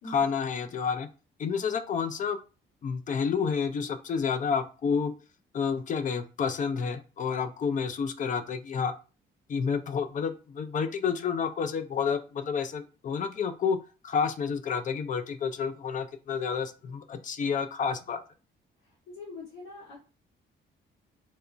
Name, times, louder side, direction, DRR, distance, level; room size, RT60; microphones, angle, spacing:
voice 1, 0.0-1.1 1.4-2.4 2.8-5.1 5.5-8.9 9.5-13.8 14.0-18.2, left 6 dB, 40° left, 9 dB, 0.4 m, -29 dB
voice 2, 18.8-20.0, left 2 dB, 90° left, -9 dB, 1.5 m, -44 dB
2.9 x 2.1 x 2.4 m, 0.34 s
cardioid pair, 90°, 20 cm